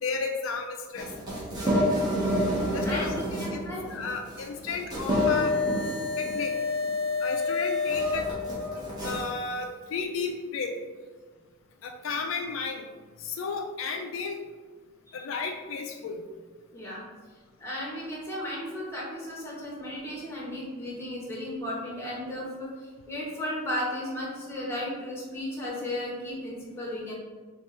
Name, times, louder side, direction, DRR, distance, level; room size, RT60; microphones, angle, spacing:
voice 1, 0.0-1.1 2.7-3.2 3.5-3.6 3.9-5.6 6.2-6.5 7.2-8.3 8.7-10.8 11.8-12.9 13.2-14.4 15.1-16.2, left 4 dB, 70° left, 4 dB, 0.4 m, -33 dB
sound 1, 1.0-9.3, left 2 dB, 20° right, 1.0 m, -28 dB
voice 2, 1.7-2.0 2.8-3.8 15.1-15.2 16.7-17.0 17.6-27.1, left 1 dB, 10° left, -4 dB, 1.0 m, -35 dB
6.1 x 2.5 x 3.1 m, 1.5 s
head